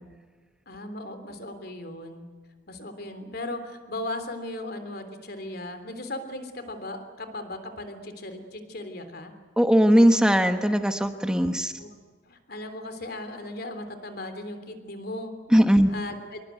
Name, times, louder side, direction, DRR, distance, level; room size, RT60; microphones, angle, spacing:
voice 1, 0.7-2.2 2.7-9.3 11.8-11.9 12.3-15.3 15.9-16.5, left 1 dB, 50° left, 8 dB, 3.4 m, -37 dB
voice 2, 9.6-11.7 15.5-15.9, equal, 5° right, 7 dB, 1.2 m, -19 dB
26.5 x 23.0 x 9.3 m, 1.5 s
head